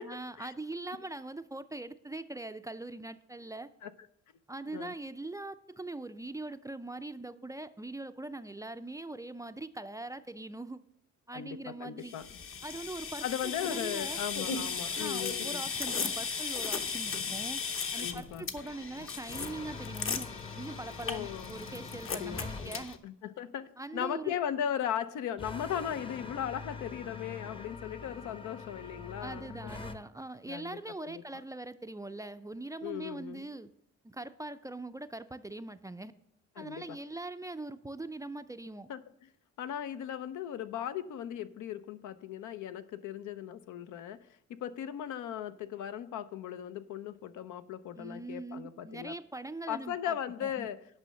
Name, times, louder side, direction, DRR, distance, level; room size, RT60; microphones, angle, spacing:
voice 1, 0.0-3.7 4.5-10.8 11.3-12.2 12.6-14.2 15.0-17.6 17.9-20.3 20.6-23.0 23.8-24.4 29.2-33.7 34.0-36.1 36.6-38.9 48.0-50.7, right 2 dB, 10° right, 11 dB, 0.4 m, -42 dB
voice 2, 11.3-12.4 13.2-15.6 18.0-18.5 21.0-21.5 22.1-29.5 30.5-31.2 32.8-33.5 36.6-37.0 38.9-39.0 39.6-49.1 49.7-50.8, left 9 dB, 80° left, 12 dB, 0.7 m, -38 dB
sound 1, 12.1-22.9, left 5 dB, 45° left, 1.0 m, -36 dB
sound 2, 19.3-22.7 25.4-30.0, left 4 dB, 15° left, 0.7 m, -44 dB
9.7 x 5.6 x 6.3 m, 0.72 s
cardioid pair, 90°, 30 cm